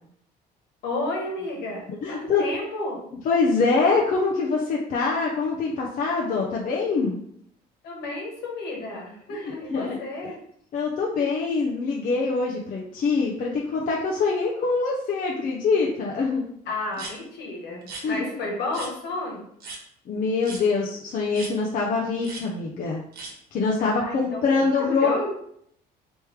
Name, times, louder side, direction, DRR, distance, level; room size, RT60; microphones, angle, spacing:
voice 1, 0.8-3.0 7.8-10.3 16.6-19.4 23.8-25.3, left 2 dB, 75° left, -2 dB, 1.5 m, -32 dB
voice 2, 1.9-2.4 3.2-7.2 9.3-9.4 9.7-10.0 10.7-16.5 18.0-18.2 20.1-23.0 23.5-25.1, left 4 dB, 55° left, -2 dB, 0.6 m, -24 dB
sound 1, 16.9-17.1 17.8-18.0 18.7-18.9 19.6-19.8 20.4-20.6 21.3-21.5 22.2-22.4 23.1-23.3, right 3 dB, 65° right, 1.1 m, -37 dB
3.4 x 3.1 x 3.2 m, 0.70 s
cardioid pair, 110°, 17 cm